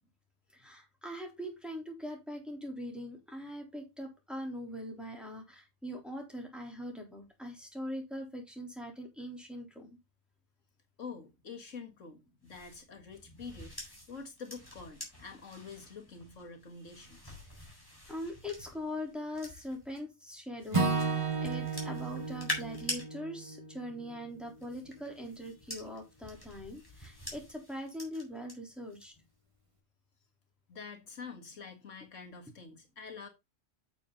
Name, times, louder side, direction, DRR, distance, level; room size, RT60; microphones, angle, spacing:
voice 1, 0.5-9.9 18.1-20.9 21.4-29.1, equal, ahead, 3.7 m, -42 dB
voice 2, 11.0-17.4 30.7-33.3, left 5 dB, 75° left, 2.0 m, -47 dB
sound 1, 12.4-20.0 20.6-23.0 24.3-28.5 28.9-29.3, left 1 dB, 15° left, 4.3 m, -45 dB
Acoustic guitar / Strum, 20.7-25.0, right 4 dB, 25° right, 1.6 m, -34 dB
8.7 x 7.1 x 3.9 m
omnidirectional pair, 1.3 m